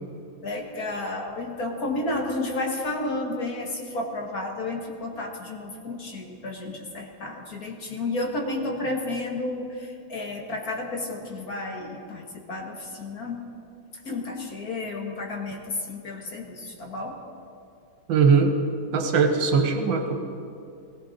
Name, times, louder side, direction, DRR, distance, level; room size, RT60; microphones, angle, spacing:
voice 1, 0.4-13.5 14.0-17.2, left 2 dB, 50° left, 1 dB, 1.7 m, -32 dB
voice 2, 18.1-18.5 18.9-20.2, right 5 dB, 70° right, 6 dB, 1.8 m, -20 dB
18.0 x 16.5 x 4.0 m, 2.5 s
omnidirectional pair, 2.3 m